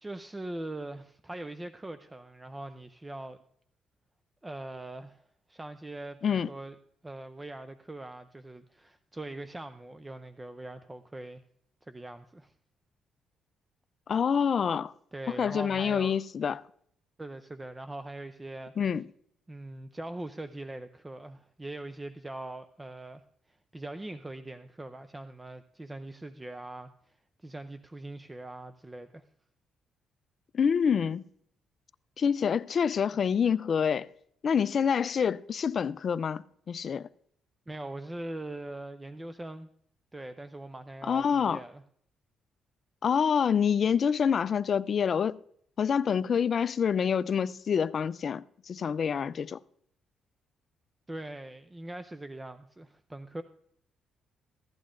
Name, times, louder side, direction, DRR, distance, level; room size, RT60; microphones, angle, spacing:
voice 1, 0.0-3.4 4.4-6.8 7.0-11.4 11.8-12.5 15.1-16.2 17.2-18.7 19.5-23.2 23.5-26.9 27.4-29.2 37.7-39.7 40.1-41.8 51.1-53.4, right 2 dB, 15° right, 0.5 m, -41 dB
voice 2, 14.1-14.9 15.4-16.6 18.8-19.0 30.5-31.2 32.2-34.1 34.4-37.1 41.0-41.6 43.0-45.4 45.8-49.6, left 7 dB, 50° left, 0.3 m, -27 dB
16.0 x 11.5 x 2.5 m
cardioid pair, 90°, 0 cm